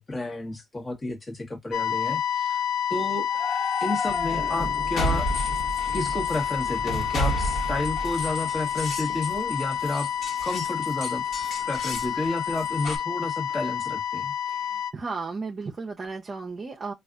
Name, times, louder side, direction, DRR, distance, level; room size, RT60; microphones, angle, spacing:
voice 1, 0.0-2.6 2.9-3.3 3.8-5.3 5.9-10.1 10.4-11.2 11.7-14.3, left 2 dB, 25° left, 1.2 m, -31 dB
sound 1, 1.7-14.9, left 9 dB, 80° left, 0.3 m, -29 dB
sound 2, 3.3-13.0, equal, 55° left, 1.2 m, -33 dB
Thunder, 4.1-9.4, right 2 dB, 5° right, 1.0 m, -40 dB
voice 2, 14.5-16.9, right 4 dB, 40° right, 0.7 m, -34 dB
4.1 x 2.4 x 2.4 m
cardioid pair, 90°, 0 cm